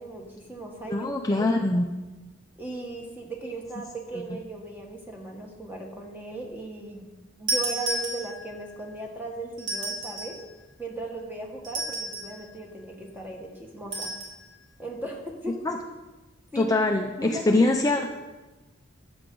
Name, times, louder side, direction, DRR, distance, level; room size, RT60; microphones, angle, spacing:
voice 1, 0.0-1.8 2.6-7.1 7.4-10.4 10.8-14.1 14.8-15.6 16.5-17.7, right 2 dB, 10° right, 0 dB, 1.5 m, -37 dB
voice 2, 0.9-1.8 15.6-15.8 16.6-18.1, left 2 dB, 15° left, 2 dB, 0.5 m, -23 dB
sound 1, 7.5-8.6 9.6-10.4 11.6-12.4 13.9-14.4, right 2 dB, 60° right, 2.4 m, -31 dB
13.0 x 7.9 x 3.8 m, 1.2 s
head